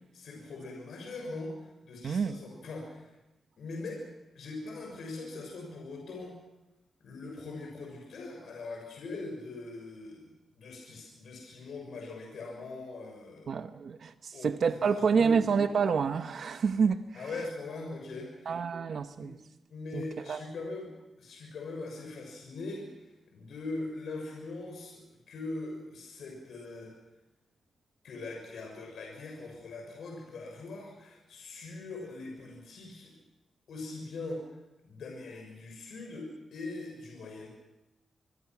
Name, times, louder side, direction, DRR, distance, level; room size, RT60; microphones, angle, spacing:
voice 1, 0.1-3.1 3.6-4.0 4.3-6.3 7.0-10.3 10.6-13.6 14.3-15.4 17.1-18.6 19.2-19.3 19.7-20.9 21.2-26.9 28.0-33.1 33.7-34.4 34.8-37.5, left 3 dB, 80° left, 6.4 m, -41 dB
voice 2, 2.0-2.4 13.5-17.0 18.5-19.4 19.9-20.0 20.3-20.4, right 6 dB, 60° right, 1.1 m, -28 dB
26.0 x 23.5 x 6.1 m
wide cardioid pair, 120°, 0 cm